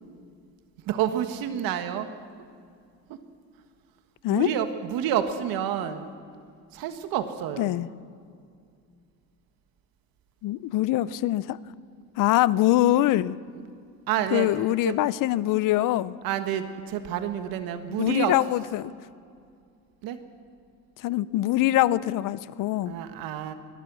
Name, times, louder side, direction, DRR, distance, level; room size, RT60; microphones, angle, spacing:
voice 1, 0.8-2.1 3.1-3.2 4.3-6.1 6.7-7.7 14.1-14.5 14.8-14.9 16.2-18.4 20.0-20.2 22.8-23.5, right 10 dB, 75° right, 9 dB, 1.6 m, -29 dB
voice 2, 10.4-11.6 12.2-13.4 14.3-16.2 18.0-18.9 21.0-22.9, left 15 dB, 65° left, 19 dB, 0.7 m, -23 dB
22.0 x 20.5 x 6.3 m, 2.3 s
cardioid pair, 120°, 35 cm